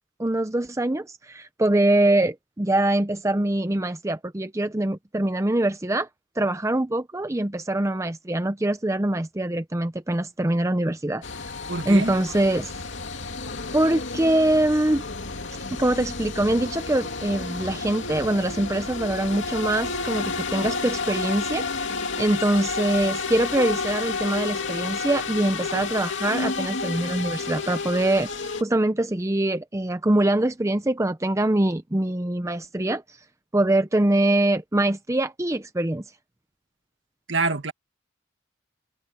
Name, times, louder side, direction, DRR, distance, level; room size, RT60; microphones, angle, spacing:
voice 1, 0.2-6.1 6.4-11.2 11.8-12.7 13.7-15.1 15.7-21.6 22.2-33.2 33.5-36.0, right 1 dB, 15° right, 0.6 m, -23 dB
sound 1, 11.2-28.6, left 4 dB, 60° left, 2.9 m, -31 dB
voice 2, 11.7-12.1 37.3-37.7, right 3 dB, 60° right, 1.9 m, -25 dB
open air
head